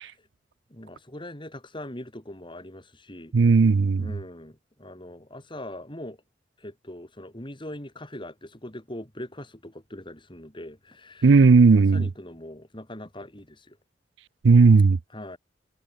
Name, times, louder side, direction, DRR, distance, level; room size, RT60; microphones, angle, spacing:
voice 1, 0.7-3.3 4.0-6.2 6.6-11.3 11.7-13.8 15.1-15.4, left 1 dB, 25° left, 5.3 m, -41 dB
voice 2, 3.3-4.1 11.2-12.1 14.4-15.0, right 4 dB, 75° right, 0.5 m, -16 dB
head